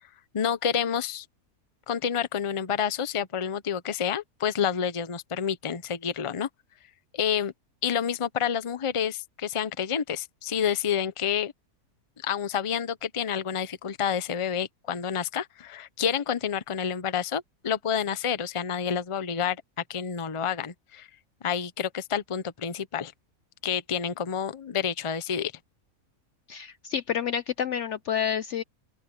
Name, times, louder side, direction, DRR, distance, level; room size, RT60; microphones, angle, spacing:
voice 1, 0.3-1.3 1.9-6.5 7.1-7.5 7.8-11.5 12.2-19.6 19.9-21.1 21.4-23.1 23.6-25.5, left 8 dB, 30° left, 0.6 m, -29 dB
voice 2, 26.5-28.6, left 8 dB, 65° left, 0.8 m, -29 dB
open air
omnidirectional pair, 1.6 m